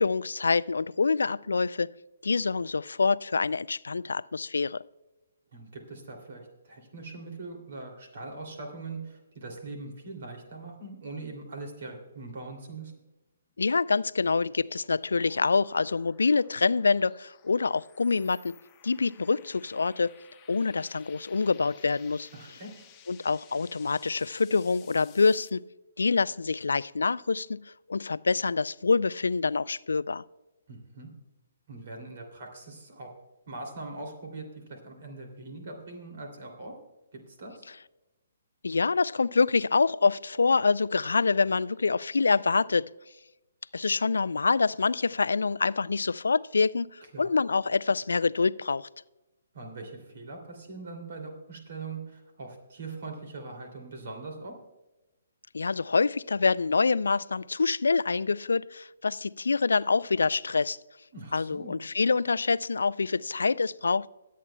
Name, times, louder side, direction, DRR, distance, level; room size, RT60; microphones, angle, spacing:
voice 1, 0.0-1.9 2.2-4.8 13.6-18.5 18.8-20.1 20.5-22.3 23.1-25.6 26.0-30.2 38.6-42.9 43.7-48.9 55.5-60.8 61.3-64.1, left 4 dB, 75° left, 0.3 m, -26 dB
voice 2, 5.5-12.9 22.3-22.8 30.7-31.1 31.7-33.1 33.5-36.7 37.1-37.6 47.1-47.3 49.5-54.5 61.1-61.8, right 3 dB, 55° right, 2.7 m, -41 dB
sound 1, 13.5-25.5, left 9 dB, 20° left, 1.0 m, -57 dB
25.0 x 8.4 x 2.2 m
figure-of-eight pair, 135°, 0 cm